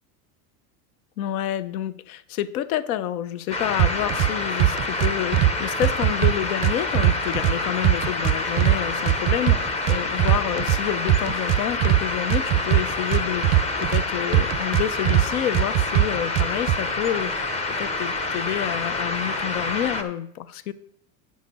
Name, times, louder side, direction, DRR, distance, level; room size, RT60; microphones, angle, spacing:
voice 1, 1.2-20.7, left 11 dB, 80° left, 15 dB, 0.7 m, -29 dB
sound 1, 3.5-20.0, left 3 dB, 15° left, 0.6 m, -28 dB
sound 2, 3.8-4.3 4.6-5.5 5.8-7.5 7.8-8.8 9.1-10.8 11.1-12.0 12.3-14.0 14.3-15.3 15.5-16.8, right 15 dB, 35° right, 0.4 m, -20 dB
9.4 x 6.4 x 5.3 m, 0.70 s
supercardioid pair, 150°, 43 cm